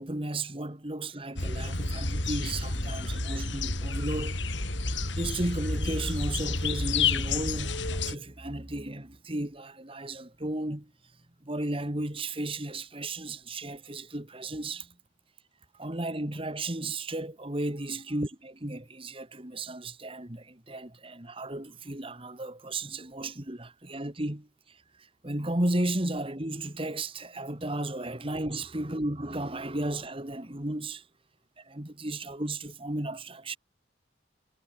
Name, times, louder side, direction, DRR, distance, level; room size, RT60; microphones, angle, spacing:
voice 1, 0.0-4.4 5.2-10.9 11.4-14.9 15.7-31.0 31.6-33.6, right 1 dB, 30° right, 2.0 m, -34 dB
sound 1, 1.4-8.2, left 3 dB, 70° left, 4.8 m, -30 dB
head